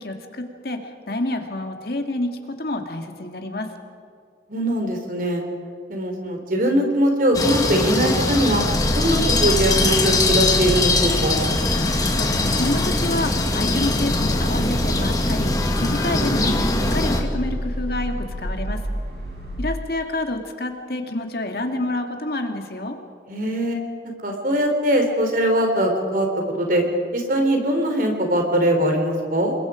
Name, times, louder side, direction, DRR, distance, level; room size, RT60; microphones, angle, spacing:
voice 1, 0.0-2.3 2.6-3.7 12.1-18.8 19.6-23.0, left 2 dB, 55° left, 4 dB, 2.2 m, -28 dB
voice 2, 4.5-5.4 5.9-8.6 8.9-11.4 19.3-19.6 23.3-23.8 24.2-26.3 26.6-26.8 27.1-29.5, right 1 dB, 50° right, 3 dB, 3.8 m, -21 dB
sound 1, 7.3-17.2, left 2 dB, 20° left, 2.0 m, -22 dB
sound 2, 8.7-19.6, equal, 70° right, 5.6 m, -29 dB
28.5 x 22.0 x 5.1 m, 2.2 s
head